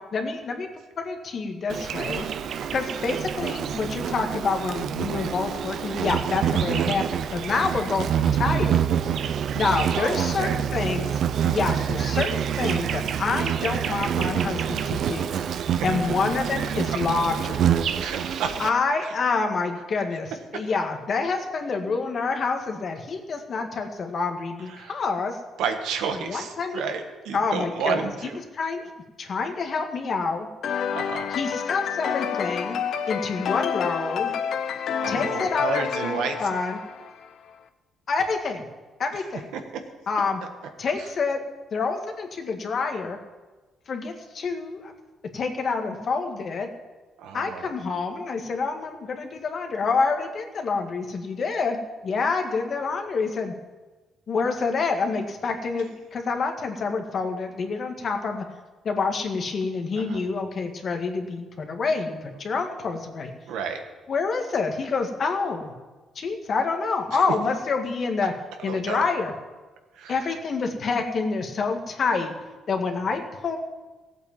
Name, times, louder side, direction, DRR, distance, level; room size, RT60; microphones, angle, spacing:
voice 1, 0.1-0.7 1.0-2.3 2.7-8.8 9.6-15.3 15.8-17.7 18.6-25.4 26.3-26.8 27.3-28.1 28.5-28.8 29.2-30.5 31.3-34.3 35.1-36.8 38.1-38.7 39.0-39.5 40.1-40.4 40.8-41.4 41.7-43.2 43.9-44.9 45.3-46.7 47.3-51.8 52.0-53.5 54.3-58.5 58.8-63.3 64.1-65.7 66.2-68.3 68.6-69.3 70.1-72.3 72.7-73.6, left 4 dB, 50° left, 4 dB, 2.0 m, -27 dB
Insect, 1.7-18.7, right 9 dB, 70° right, 0.7 m, -26 dB
voice 2, 9.9-10.6 15.5-15.8 18.0-18.6 19.0-19.1 24.7-24.9 25.6-28.4 30.9-31.3 35.0-36.4 39.5-39.6 41.0-41.1 47.2-47.7 60.0-60.2 63.5-63.8 67.1-67.2 68.6-69.0 69.9-70.2, right 6 dB, 90° right, 5 dB, 1.6 m, -31 dB
sound 1, 30.6-37.3, left 7 dB, 70° left, 0.8 m, -29 dB
15.5 x 8.4 x 7.4 m, 1.2 s
cardioid pair, 90°, 0 cm